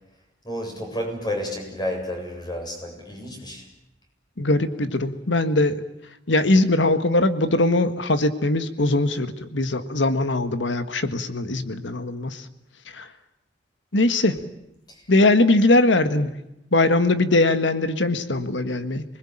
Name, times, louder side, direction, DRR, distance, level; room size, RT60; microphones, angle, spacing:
voice 1, 0.4-3.6, left 1 dB, 25° left, 2 dB, 7.9 m, -31 dB
voice 2, 4.4-5.8 6.3-12.4 12.9-13.1 13.9-14.4 15.1-16.3 16.7-19.0, left 2 dB, 75° left, 10 dB, 1.6 m, -21 dB
27.5 x 21.0 x 8.9 m, 0.86 s
head